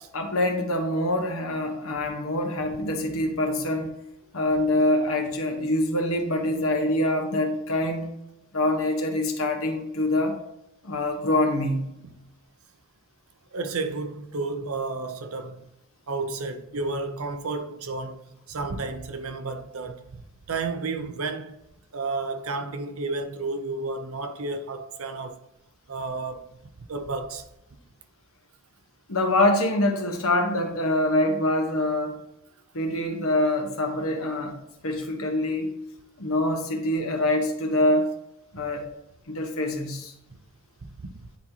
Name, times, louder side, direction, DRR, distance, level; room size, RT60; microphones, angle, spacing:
voice 1, 0.1-3.9 4.3-8.1 8.5-10.4 10.8-11.9 29.1-32.2 32.7-34.5 34.8-35.7 36.2-38.1 38.5-38.9 39.3-40.1, left 1 dB, 70° left, 1.2 m, -25 dB
voice 2, 13.5-15.7 16.1-20.2 20.5-21.6 21.9-25.4 25.9-26.5 26.8-27.5 38.6-38.7 40.8-41.3, right 3 dB, 75° right, 0.7 m, -32 dB
9.6 x 4.1 x 2.9 m
head